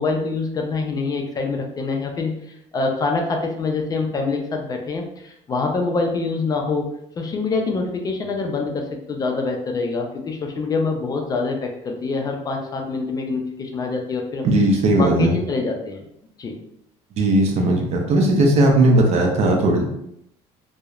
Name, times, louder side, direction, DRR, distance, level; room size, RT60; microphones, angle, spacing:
voice 1, 0.0-2.4 2.7-6.9 7.2-14.4 15.0-16.0 16.4-16.6, left 3 dB, 30° left, 2 dB, 0.3 m, -25 dB
voice 2, 14.4-15.3 17.2-19.8, right 1 dB, 50° right, 1 dB, 0.6 m, -17 dB
2.8 x 2.0 x 2.3 m, 0.77 s
cardioid pair, 125°, 14 cm